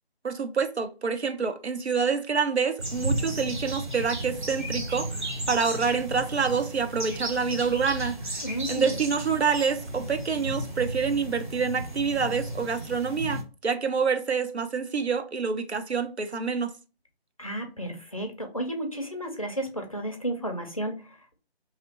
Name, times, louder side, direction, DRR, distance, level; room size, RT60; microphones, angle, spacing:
voice 1, 0.2-5.1 5.5-8.2 8.7-16.7, right 5 dB, 85° right, 0.6 m, -27 dB
sound 1, 2.8-13.4, right 1 dB, 50° right, 1.0 m, -34 dB
voice 2, 8.4-9.0 17.4-21.4, right 1 dB, 35° left, 0.5 m, -33 dB
3.0 x 2.7 x 2.8 m
figure-of-eight pair, 155°, 32 cm